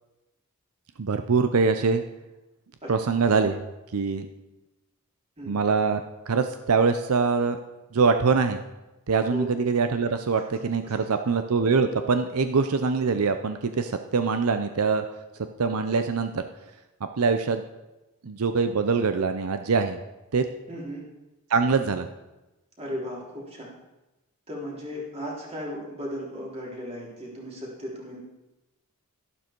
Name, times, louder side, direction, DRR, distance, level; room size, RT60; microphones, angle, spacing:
voice 1, 1.0-2.0 2.9-3.6 3.9-4.3 5.5-7.6 7.9-8.6 9.1-15.0 15.3-16.4 17.2-17.6 18.2-20.0 20.3-20.5 21.5-22.1, right 4 dB, 80° right, 8 dB, 0.6 m, -23 dB
voice 2, 2.8-3.2 5.4-5.6 9.3-9.5 10.3-10.4 10.8-11.0 20.7-21.0 22.8-23.7 24.5-28.2, equal, 30° right, -3 dB, 3.7 m, -36 dB
13.0 x 11.5 x 4.6 m, 1.0 s
head